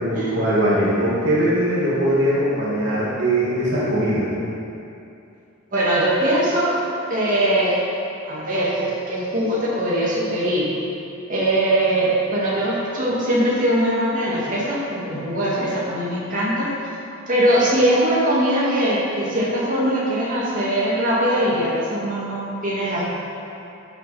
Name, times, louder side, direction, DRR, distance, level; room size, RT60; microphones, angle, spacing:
voice 1, 0.0-4.3, right 1 dB, 55° right, -8 dB, 2.3 m, -21 dB
voice 2, 5.7-6.8 7.1-7.8 8.3-10.7 11.3-16.7 17.3-23.0, right 1 dB, 40° right, -8 dB, 2.4 m, -21 dB
13.0 x 7.9 x 4.4 m, 2.7 s
head